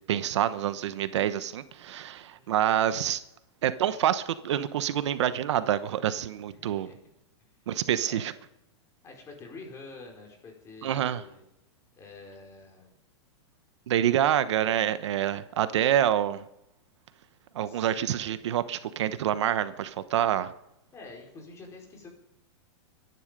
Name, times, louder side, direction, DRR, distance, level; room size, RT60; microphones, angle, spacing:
voice 1, 0.1-3.2 3.6-6.9 7.7-8.3 10.8-11.2 13.9-16.4 17.5-20.5, right 11 dB, 75° right, 13 dB, 1.1 m, -27 dB
voice 2, 2.3-2.7 6.5-6.9 8.0-8.3 9.0-11.4 12.0-12.9 17.6-18.3 20.9-22.1, left 3 dB, 20° left, 1 dB, 5.0 m, -47 dB
23.0 x 11.0 x 5.3 m, 0.86 s
supercardioid pair, 150°, 15 cm